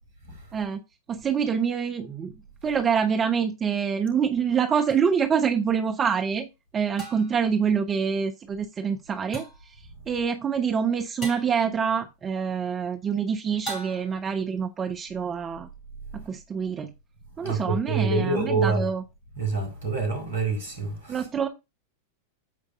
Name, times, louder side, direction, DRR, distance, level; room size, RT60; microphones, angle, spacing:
voice 1, 0.5-0.8 1.1-2.3 2.6-6.5 6.7-15.7 16.1-16.9 17.4-19.0 21.1-21.5, right 6 dB, 20° right, 1.2 m, -26 dB
sound 1, 4.9-5.0 7.0-7.5 9.3-9.7 11.2-11.6 13.7-14.3, right 2 dB, 30° left, 4.0 m, -37 dB
voice 2, 17.4-18.8 19.4-21.2, right 3 dB, 65° right, 4.3 m, -26 dB
15.0 x 5.2 x 2.6 m
figure-of-eight pair, 90°, 0 cm